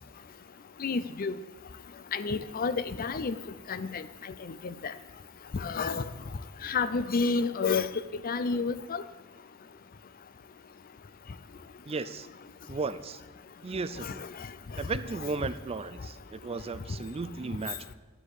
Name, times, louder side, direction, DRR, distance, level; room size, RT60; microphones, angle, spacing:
voice 1, 0.8-1.3 2.1-3.4 3.7-4.0 4.6-4.9 5.5-6.1 6.6-9.0 14.0-14.1, left 4 dB, 45° left, 14 dB, 0.5 m, -30 dB
voice 2, 11.9-12.3 12.7-13.2 13.6-14.2 14.8-17.9, right 4 dB, 30° right, 13 dB, 0.4 m, -35 dB
12.0 x 10.0 x 4.9 m, 1.3 s
head